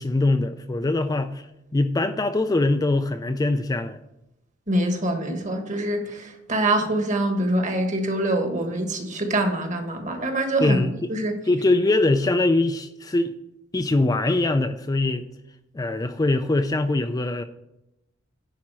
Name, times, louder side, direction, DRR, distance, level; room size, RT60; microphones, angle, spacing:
voice 1, 0.0-1.5 1.7-4.0 10.6-11.1 11.4-13.3 13.7-15.2 15.7-17.4, left 2 dB, 20° left, 8 dB, 0.4 m, -22 dB
voice 2, 4.7-11.3, right 1 dB, 40° right, 5 dB, 1.4 m, -25 dB
10.5 x 4.3 x 6.1 m, 0.89 s
head